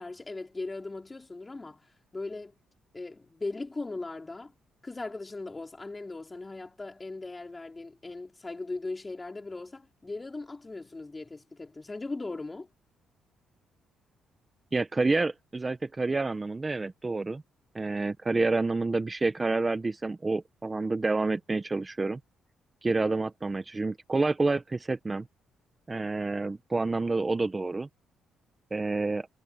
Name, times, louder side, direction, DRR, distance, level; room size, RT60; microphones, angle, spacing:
voice 1, 0.0-1.8 2.1-2.5 2.9-4.5 4.8-12.7, left 3 dB, 20° left, 4.9 m, -38 dB
voice 2, 14.7-17.4 17.7-22.2 22.8-25.3 25.9-27.9 28.7-29.3, right 3 dB, 25° right, 1.2 m, -28 dB
cardioid pair, 90°, 0 cm